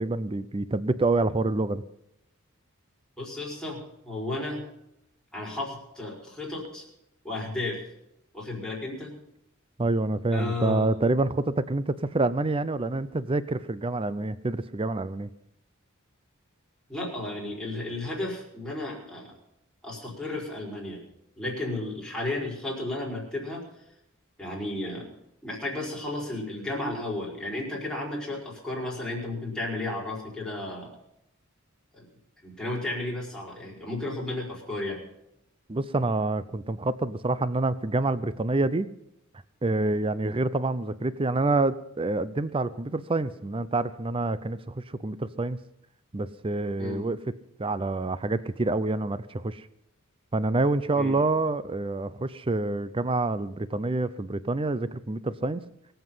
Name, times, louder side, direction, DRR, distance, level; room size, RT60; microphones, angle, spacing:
voice 1, 0.0-1.8 9.8-15.3 35.7-38.9 39.6-45.6 46.1-47.2 47.6-49.7 50.3-55.6, right 2 dB, 25° right, 15 dB, 0.5 m, -27 dB
voice 2, 3.2-4.6 5.3-6.8 7.2-7.8 8.3-9.1 10.3-10.9 16.9-19.3 19.8-21.0 21.4-23.6 24.4-25.1 25.4-30.9 31.9-32.1 32.4-35.0 46.8-47.0 50.9-51.2, left 2 dB, 5° left, -4 dB, 5.0 m, -33 dB
23.0 x 8.0 x 5.6 m, 0.82 s
head